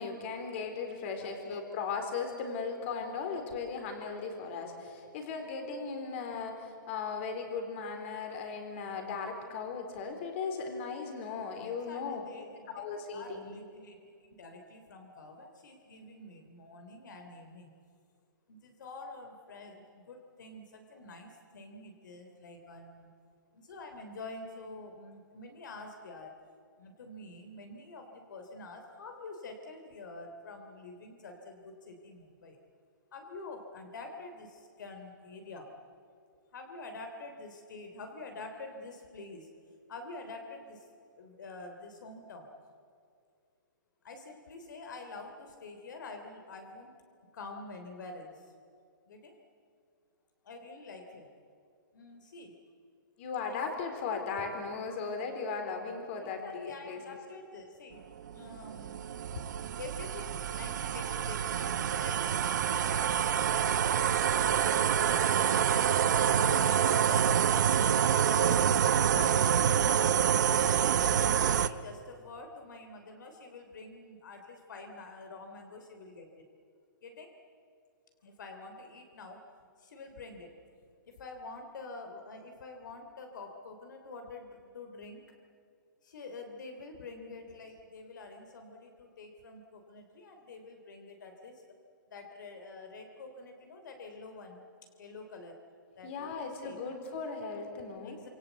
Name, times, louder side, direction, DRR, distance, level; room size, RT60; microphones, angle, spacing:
voice 1, 0.0-12.2 12.7-13.5 53.2-57.0 96.0-98.2, left 5 dB, 35° left, 5 dB, 4.0 m, -37 dB
voice 2, 1.2-1.6 11.6-12.7 13.1-14.1 14.4-17.7 18.5-23.1 23.5-26.4 26.8-32.6 33.1-35.7 36.5-39.5 39.9-40.9 41.1-42.5 44.0-46.9 47.3-48.5 49.1-49.4 50.4-51.3 51.9-52.5 53.5-53.6 56.2-64.8 65.1-67.7 68.1-70.6 71.1-76.4 77.0-77.3 78.2-79.4 79.8-80.5 80.8-85.2 86.0-91.6 92.1-94.6 95.0-95.6 96.0-96.8 98.0-98.3, left 3 dB, 65° left, 5 dB, 3.3 m, -47 dB
sound 1, 58.2-71.7, right 9 dB, 60° right, 1.0 m, -27 dB
27.0 x 25.5 x 8.2 m, 2.3 s
hypercardioid pair, 165°, 11 cm